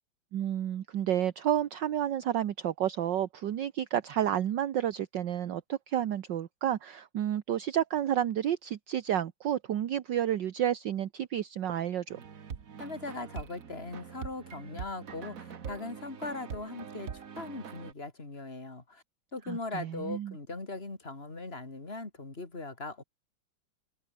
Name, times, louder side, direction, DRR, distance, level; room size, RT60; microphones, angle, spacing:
voice 1, 0.3-12.2 19.5-20.3, right 10 dB, 60° right, 1.6 m, -30 dB
sound 1, 12.1-17.9, right 7 dB, 45° right, 1.6 m, -43 dB
voice 2, 12.8-19.0 19.3-23.0, left 3 dB, 25° left, 3.8 m, -40 dB
omnidirectional pair, 2.3 m